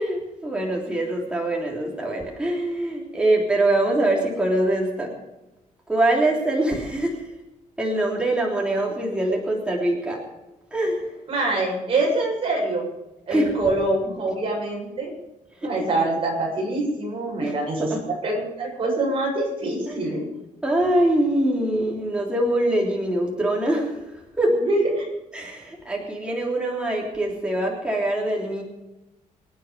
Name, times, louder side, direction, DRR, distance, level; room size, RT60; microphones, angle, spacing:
voice 1, 0.0-5.1 5.9-7.2 7.8-10.2 10.7-11.1 13.3-13.5 15.6-15.9 17.4-18.0 19.9-20.1 20.6-24.6 25.3-28.6, right 1 dB, 5° right, -2 dB, 3.4 m, -24 dB
voice 2, 11.3-12.8 13.3-15.1 15.6-17.9 18.2-20.2 24.7-25.1, right 2 dB, 40° right, -2 dB, 7.5 m, -24 dB
25.5 x 9.4 x 5.2 m, 0.97 s
cardioid pair, 155°, 14 cm